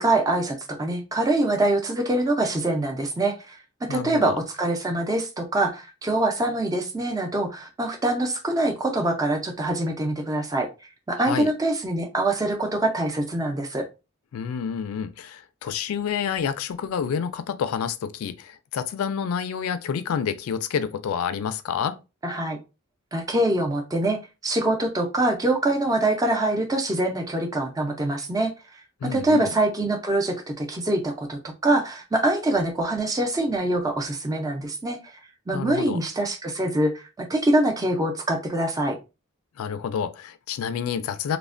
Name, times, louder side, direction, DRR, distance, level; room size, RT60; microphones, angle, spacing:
voice 1, 0.0-10.7 11.1-13.9 22.2-22.6 23.1-28.5 29.0-35.1 35.5-39.0, right 1 dB, 15° right, 0.4 m, -24 dB
voice 2, 3.9-4.4 11.2-11.5 14.3-22.0 29.0-29.5 35.5-36.0 39.6-41.4, left 7 dB, 90° left, 0.3 m, -29 dB
3.2 x 2.1 x 2.4 m
head